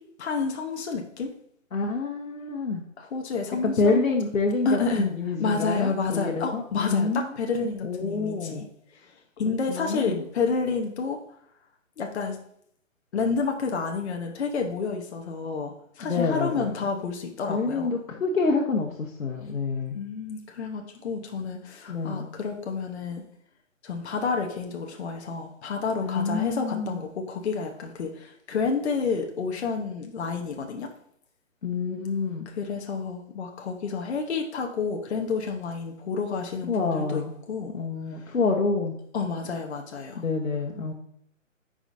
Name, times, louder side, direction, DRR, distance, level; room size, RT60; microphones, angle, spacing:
voice 1, 0.2-1.3 3.0-4.0 4.6-5.1 5.4-8.6 8.9-11.2 12.0-12.4 13.1-17.9 19.9-23.2 23.8-30.9 32.6-37.2 37.5-37.7 39.1-40.2, left 4 dB, 55° left, 2 dB, 1.0 m, -30 dB
voice 2, 1.7-2.8 3.6-7.3 7.8-8.7 9.7-10.2 16.0-16.7 17.5-20.0 21.9-22.3 26.0-27.0 31.6-32.5 36.6-37.3 37.7-38.9 40.2-40.9, left 4 dB, 90° left, 0 dB, 1.2 m, -27 dB
9.8 x 5.0 x 2.6 m, 0.68 s
hypercardioid pair, 155°, 40 cm